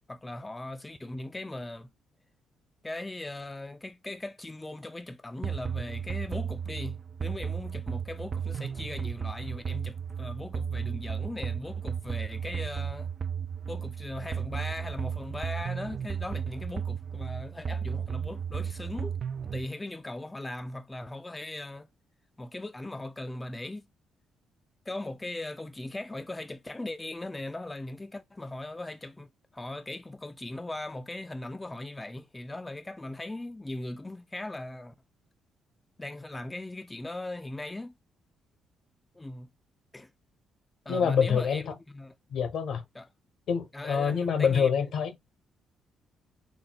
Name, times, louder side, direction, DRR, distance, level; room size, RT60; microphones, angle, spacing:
voice 1, 0.1-1.9 2.8-13.1 13.7-19.2 19.5-21.9 22.4-23.8 24.9-29.3 29.5-34.9 36.0-37.9 39.1-39.5 39.9-40.1 40.9-42.1 42.9-43.1 43.7-44.7, left 2 dB, 15° left, 0.4 m, -39 dB
sound 1, 5.4-19.7, right 7 dB, 45° right, 0.4 m, -34 dB
voice 2, 40.9-41.7 42.3-42.8 43.5-45.1, left 6 dB, 70° left, 1.0 m, -26 dB
4.0 x 2.2 x 4.0 m
cardioid pair, 90°, 0 cm